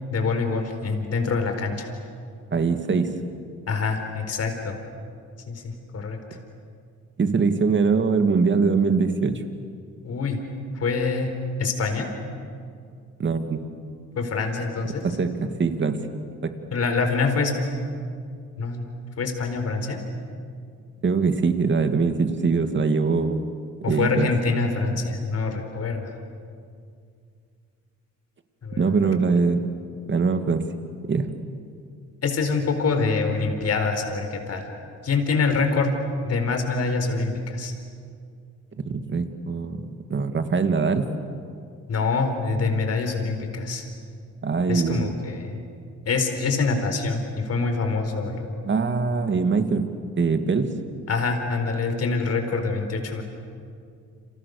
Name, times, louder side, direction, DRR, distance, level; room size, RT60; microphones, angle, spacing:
voice 1, 0.1-1.9 3.7-4.8 5.5-6.2 10.0-10.4 10.7-11.3 11.6-12.1 14.2-15.0 16.7-17.5 18.6-18.9 19.2-20.0 23.8-26.1 28.6-29.1 32.2-34.7 35.0-35.9 36.2-37.7 41.9-43.8 44.7-45.6 46.1-48.6 51.1-53.2, left 4 dB, 55° left, 5 dB, 4.5 m, -25 dB
voice 2, 2.5-3.1 7.2-9.4 13.2-13.7 15.0-16.0 16.4-16.5 21.0-23.5 23.9-24.3 28.8-29.6 30.1-30.6 31.1-31.3 38.9-41.1 44.4-45.2 48.6-49.9 50.2-50.7, right 4 dB, 40° right, 7 dB, 2.5 m, -22 dB
30.0 x 27.0 x 6.8 m, 2.3 s
cardioid pair, 90°, 30 cm